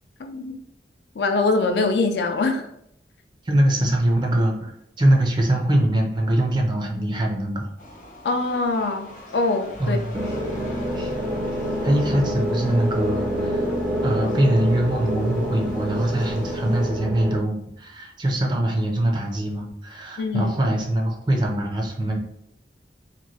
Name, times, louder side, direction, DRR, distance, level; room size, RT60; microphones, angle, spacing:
voice 1, 0.2-0.6 1.2-2.7 8.2-9.1 9.3-10.0 20.2-20.5, left 3 dB, 75° left, 5 dB, 0.4 m, -23 dB
voice 2, 3.4-4.7 5.0-7.7 9.8-10.1 10.9-11.1 11.5-13.7 14.0-22.2, right 1 dB, 25° right, 1 dB, 0.4 m, -23 dB
sound 1, 7.8-16.9, equal, 45° left, 0.8 m, -43 dB
sound 2, 10.1-17.4, equal, 70° right, 0.8 m, -27 dB
2.9 x 2.6 x 2.7 m, 0.74 s
head